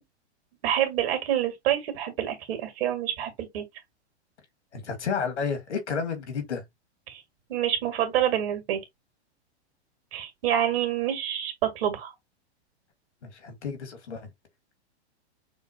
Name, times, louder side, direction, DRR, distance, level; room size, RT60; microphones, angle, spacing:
voice 1, 0.6-3.6 7.1-7.2 7.5-8.8 10.1-12.1, right 10 dB, 60° right, 2.0 m, -27 dB
voice 2, 4.7-6.6 13.2-14.3, left 6 dB, 85° left, 1.9 m, -31 dB
6.2 x 2.8 x 2.7 m
hypercardioid pair, 120°, 34 cm